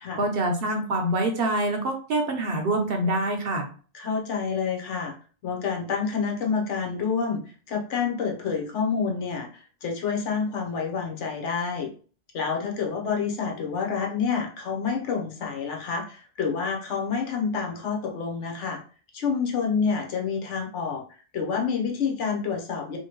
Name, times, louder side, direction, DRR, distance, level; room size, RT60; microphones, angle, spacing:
voice 1, 0.2-3.7, right 1 dB, 60° right, 3 dB, 0.8 m, -25 dB
voice 2, 3.9-5.1 5.4-7.4 7.7-11.9 12.3-18.8 19.1-21.0 21.3-23.0, left 5 dB, 80° left, 1 dB, 1.2 m, -28 dB
2.9 x 2.7 x 2.9 m, 0.39 s
omnidirectional pair, 1.2 m